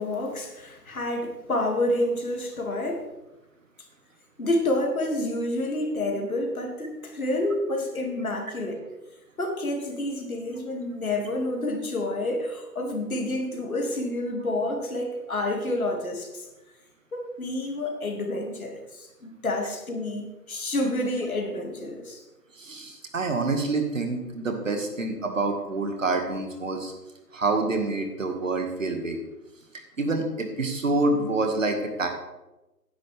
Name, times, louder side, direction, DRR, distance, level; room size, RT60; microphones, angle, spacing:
voice 1, 0.0-3.1 4.4-8.8 9.4-16.5 17.1-22.2, left 1 dB, 60° left, 2 dB, 2.7 m, -29 dB
voice 2, 22.6-26.9 27.3-29.2 30.0-32.1, right 3 dB, 50° right, 4 dB, 2.1 m, -27 dB
15.0 x 10.0 x 3.6 m, 1.0 s
figure-of-eight pair, 165°, 47 cm